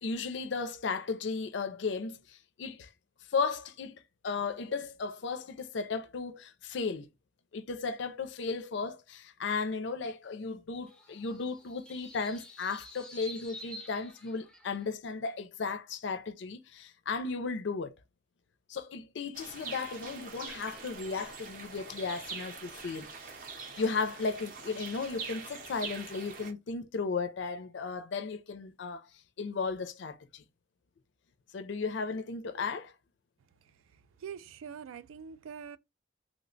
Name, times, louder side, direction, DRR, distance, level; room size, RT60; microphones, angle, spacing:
voice 1, 0.0-2.9 3.3-7.1 7.5-17.9 18.7-23.1 23.8-29.1 29.4-30.4 31.5-32.9, left 4 dB, 65° left, 0.4 m, -35 dB
sound 1, 10.9-14.9, left 1 dB, 5° left, 0.4 m, -49 dB
sound 2, 19.3-26.5, right 4 dB, 45° right, 0.6 m, -44 dB
voice 2, 34.2-35.8, right 7 dB, 85° right, 0.3 m, -44 dB
3.1 x 2.1 x 3.7 m
head